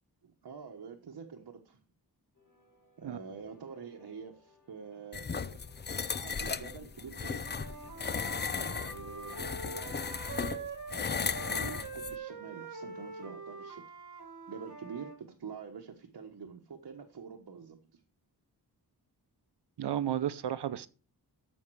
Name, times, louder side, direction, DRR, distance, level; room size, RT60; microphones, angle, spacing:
voice 1, 0.2-1.8 3.0-5.6 6.1-7.5 8.6-9.9 10.9-13.8 14.5-18.0, right 6 dB, 65° right, 1.3 m, -46 dB
sound 1, 2.3-10.2, left 3 dB, 50° left, 3.7 m, -64 dB
sound 2, 5.1-12.2, left 5 dB, 25° left, 0.5 m, -36 dB
Wind instrument woodwind instrument, 7.4-11.0 11.3-15.2, right 4 dB, 45° right, 2.5 m, -44 dB
voice 2, 19.8-20.9, right 10 dB, 80° right, 0.7 m, -32 dB
14.0 x 5.4 x 4.7 m
wide cardioid pair, 130°, 40 cm